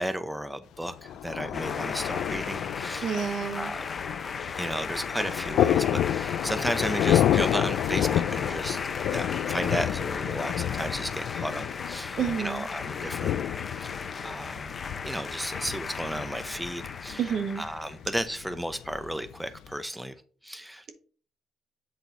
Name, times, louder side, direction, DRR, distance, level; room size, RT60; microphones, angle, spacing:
voice 1, 0.0-3.2 3.5-4.0 4.6-8.8 9.1-13.3 13.7-14.7 15.0-20.2 20.4-20.9, right 1 dB, 5° right, 0.6 m, -34 dB
Thunder, 0.8-19.7, left 11 dB, 80° left, 0.3 m, -30 dB
sound 1, 1.5-18.0, left 4 dB, 35° left, 0.8 m, -36 dB
voice 2, 3.0-3.7 12.2-12.7 17.2-17.6, right 7 dB, 70° right, 1.4 m, -29 dB
8.1 x 4.2 x 4.0 m
cardioid pair, 90°, 0 cm